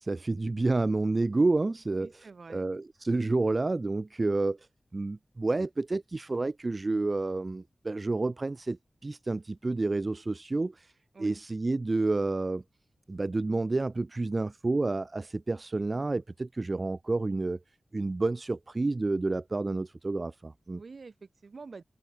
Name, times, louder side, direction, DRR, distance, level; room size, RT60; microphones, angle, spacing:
voice 1, 0.0-2.2 2.5-4.6 4.9-10.9 11.2-12.6 13.1-17.6 17.9-20.8, right 2 dB, 45° right, 2.3 m, -29 dB
voice 2, 1.9-2.7 11.1-11.4 20.7-21.8, right 4 dB, 65° right, 4.4 m, -47 dB
open air
cardioid pair, 50°, 0 cm